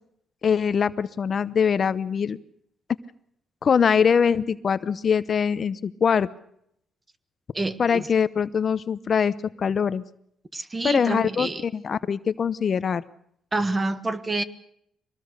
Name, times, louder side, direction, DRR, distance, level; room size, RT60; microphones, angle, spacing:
voice 1, 0.4-2.4 3.6-6.3 7.8-10.0 10.8-13.0, left 6 dB, 50° left, 15 dB, 0.8 m, -23 dB
voice 2, 7.5-8.1 10.5-11.6 13.5-14.4, right 2 dB, 25° right, 12 dB, 1.5 m, -27 dB
24.0 x 19.0 x 6.6 m, 0.71 s
cardioid pair, 90°, 0 cm